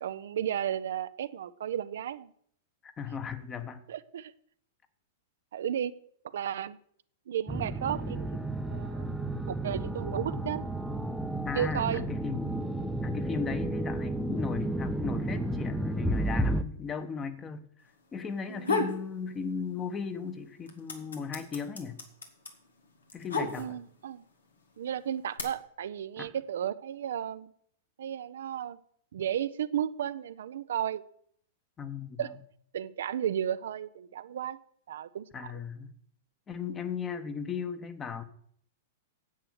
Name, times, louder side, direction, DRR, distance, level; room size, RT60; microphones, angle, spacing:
voice 1, 0.0-2.3 3.9-4.3 5.5-5.9 6.3-6.8 7.3-8.4 8.6-9.1 9.5-10.6 11.5-12.1 18.5-18.7 23.6-24.2 24.8-27.5 28.0-28.8 29.1-31.0 32.2-32.3 32.7-34.6 34.9-35.6, right 10 dB, 70° right, 13 dB, 0.6 m, -33 dB
voice 2, 2.8-3.8 11.5-12.5 13.0-17.6 18.1-22.0 23.1-23.8 26.2-26.3 31.8-32.3 35.3-35.9 36.5-38.2, left 6 dB, 25° left, 9 dB, 1.3 m, -36 dB
sound 1, 7.5-16.6, right 1 dB, 5° right, 0.8 m, -32 dB
sound 2, 18.4-19.0 19.4-20.1 20.4-24.0 24.8-25.4, left 4 dB, 85° left, 2.0 m, -32 dB
10.0 x 8.2 x 6.5 m, 0.64 s
hypercardioid pair, 105°, 0 cm